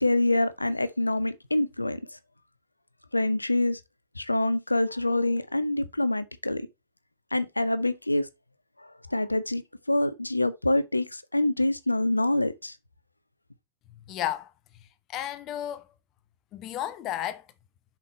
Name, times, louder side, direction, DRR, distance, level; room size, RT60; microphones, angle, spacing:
voice 1, 0.0-2.0 3.1-3.8 4.2-6.7 7.3-8.3 9.1-9.6 9.9-12.8, left 2 dB, 85° left, 0.6 m, -26 dB
voice 2, 14.1-14.5 15.1-15.9 16.5-17.4, left 12 dB, 35° left, 0.9 m, -32 dB
7.6 x 6.0 x 3.1 m
figure-of-eight pair, 90°, 0 cm